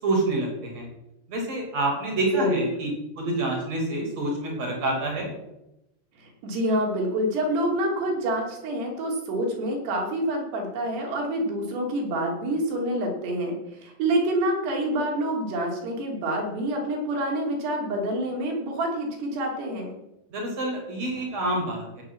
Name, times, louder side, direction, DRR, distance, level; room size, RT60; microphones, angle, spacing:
voice 1, 0.0-0.9 1.3-2.9 3.2-5.3 20.3-22.0, right 2 dB, 40° right, -1 dB, 5.5 m, -27 dB
voice 2, 2.3-2.7 6.2-20.0, right 1 dB, 80° right, 0 dB, 5.2 m, -27 dB
16.5 x 6.3 x 7.7 m, 0.89 s
omnidirectional pair, 4.8 m